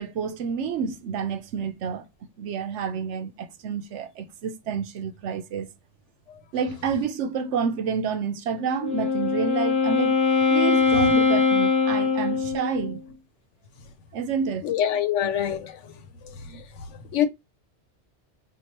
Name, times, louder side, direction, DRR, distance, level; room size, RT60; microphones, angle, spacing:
voice 1, 0.0-2.0 2.4-5.7 6.5-10.2 10.5-13.0 14.1-14.6, right 6 dB, 80° right, 0.9 m, -29 dB
Wind instrument woodwind instrument, 8.6-13.0, left 5 dB, 20° left, 0.6 m, -22 dB
voice 2, 14.6-15.8 16.5-16.6 17.1-17.3, left 10 dB, 85° left, 1.0 m, -24 dB
4.4 x 2.5 x 2.9 m
omnidirectional pair, 1.2 m